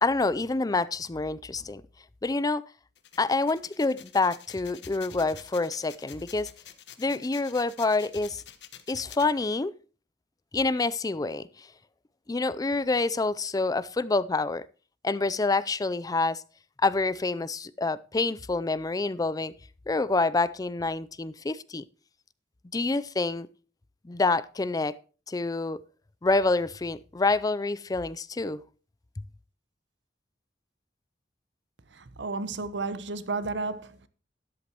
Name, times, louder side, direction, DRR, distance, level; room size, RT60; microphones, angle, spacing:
voice 1, 0.0-1.8 2.2-2.6 3.2-6.5 7.0-8.4 8.9-9.7 10.5-11.7 12.3-14.6 15.0-16.4 16.8-19.5 19.9-21.8 22.7-23.5 24.0-25.0 25.3-25.8 26.2-28.6, left 3 dB, 20° left, 0.4 m, -27 dB
sound 1, 3.0-9.3, left 10 dB, 70° left, 1.3 m, -48 dB
voice 2, 31.9-34.1, right 3 dB, 75° right, 1.0 m, -33 dB
13.0 x 11.5 x 2.9 m
head